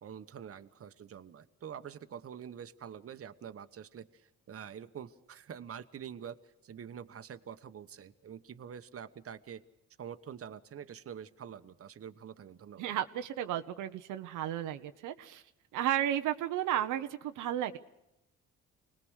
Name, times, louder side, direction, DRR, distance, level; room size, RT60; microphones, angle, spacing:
voice 1, 0.0-9.6 10.0-12.9, right 8 dB, 50° right, 10 dB, 1.2 m, -46 dB
voice 2, 12.8-15.4 15.7-17.8, right 11 dB, 90° right, 7 dB, 1.0 m, -33 dB
25.5 x 19.5 x 6.4 m, 0.88 s
cardioid pair, 90°, 30 cm